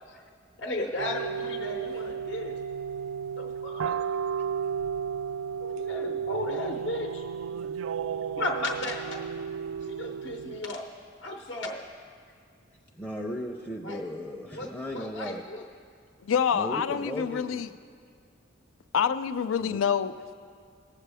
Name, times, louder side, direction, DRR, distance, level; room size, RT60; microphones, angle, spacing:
voice 1, 0.6-2.6 3.4-4.0 5.7-7.2 8.4-9.5 9.8-10.9 11.2-11.9 13.8-14.0 14.5-15.6, left 1 dB, 65° left, 2 dB, 0.8 m, -35 dB
sound 1, 1.0-10.6, right 7 dB, 80° right, 0.3 m, -33 dB
voice 2, 13.0-15.4 16.5-17.8 19.6-19.8, left 1 dB, 5° left, -1 dB, 0.5 m, -36 dB
voice 3, 16.2-17.7 18.9-20.3, left 7 dB, 85° left, 12 dB, 0.4 m, -27 dB
18.0 x 7.4 x 3.5 m, 2.2 s
head